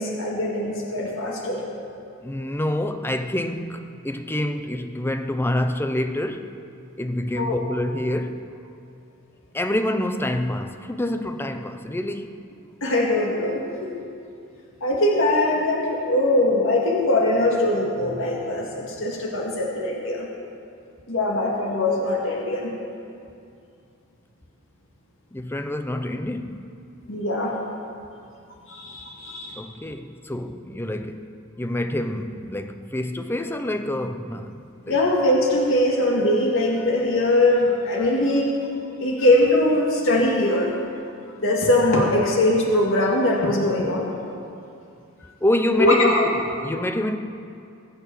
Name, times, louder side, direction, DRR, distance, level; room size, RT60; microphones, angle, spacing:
voice 1, 0.0-1.6 7.4-7.6 12.8-13.9 14.8-20.3 21.1-22.7 27.1-27.6 28.7-29.6 34.9-38.7 39.0-40.8 41.4-44.1 45.8-46.3, left 1 dB, 60° left, 2.1 m, -21 dB
voice 2, 2.2-6.5 7.0-8.4 9.5-12.3 25.3-26.7 29.6-31.3 31.6-35.0 45.4-47.2, left 1 dB, 10° left, 0.7 m, -27 dB
22.0 x 8.1 x 7.0 m
head